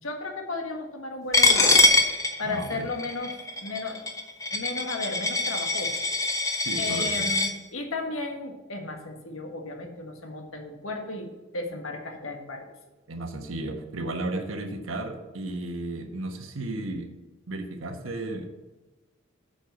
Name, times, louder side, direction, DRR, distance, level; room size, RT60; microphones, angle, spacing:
voice 1, 0.0-1.7 2.4-3.3 3.6-4.0 4.5-6.0 6.7-12.7, left 2 dB, 80° left, 3 dB, 1.6 m, -34 dB
Coin (dropping), 1.3-7.5, left 2 dB, 15° left, 0.9 m, -23 dB
voice 2, 2.4-2.9 6.6-7.3 13.1-17.1 17.5-18.5, right 2 dB, 75° right, 5 dB, 1.3 m, -34 dB
8.4 x 5.5 x 6.8 m, 1.2 s
head